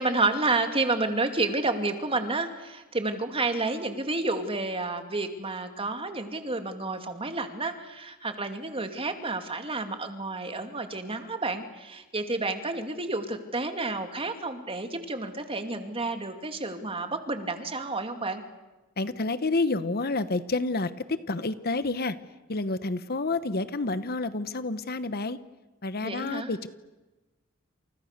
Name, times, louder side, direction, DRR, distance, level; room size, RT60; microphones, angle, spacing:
voice 1, 0.0-18.4 26.0-26.5, right 3 dB, 25° right, 7 dB, 2.5 m, -30 dB
voice 2, 19.0-22.2 22.5-25.4 25.8-26.7, left 3 dB, 45° left, 13 dB, 1.1 m, -29 dB
29.5 x 28.5 x 6.7 m, 1.1 s
head